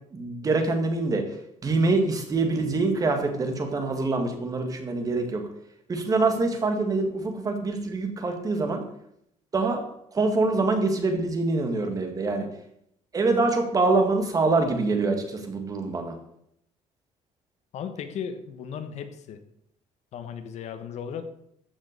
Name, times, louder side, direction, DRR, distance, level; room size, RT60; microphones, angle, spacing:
voice 1, 0.1-1.4 1.6-5.5 5.9-8.8 9.5-9.8 10.1-12.5 13.1-16.1, right 3 dB, 25° right, 5 dB, 2.0 m, -25 dB
voice 2, 17.7-19.4 20.1-21.3, left 7 dB, 60° left, 9 dB, 1.3 m, -36 dB
14.0 x 6.3 x 6.8 m, 0.73 s
cardioid pair, 155°, 13 cm